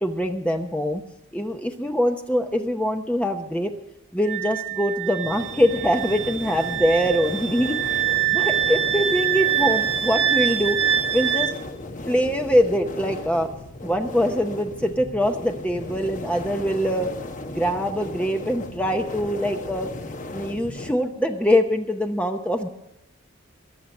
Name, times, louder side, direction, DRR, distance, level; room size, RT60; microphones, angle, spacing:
voice 1, 0.0-1.0 1.3-3.7 4.1-8.0 8.3-10.8 11.1-11.5 12.1-13.5 13.8-17.1 17.5-19.9 20.3-22.7, equal, 5° left, 4 dB, 0.8 m, -23 dB
Wind instrument woodwind instrument, 4.3-11.5, right 10 dB, 65° right, 1.0 m, -25 dB
sound 1, 5.2-20.9, left 2 dB, 40° left, 1.1 m, -36 dB
22.0 x 7.5 x 6.5 m, 0.89 s
head